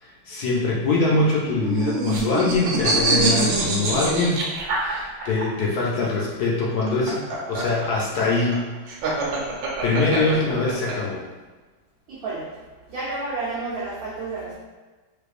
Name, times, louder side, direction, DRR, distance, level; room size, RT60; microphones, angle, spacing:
voice 1, 0.0-4.4 4.7-7.2 7.5-8.7 9.5-11.2, left 3 dB, 70° left, -4 dB, 1.0 m, -23 dB
sound 1, 1.4-5.4 6.7-10.9, right 3 dB, 80° right, 1.4 m, -24 dB
voice 2, 12.1-12.5 12.9-14.5, right 3 dB, 60° right, -8 dB, 1.0 m, -30 dB
4.3 x 2.6 x 2.4 m, 1.3 s
omnidirectional pair, 2.1 m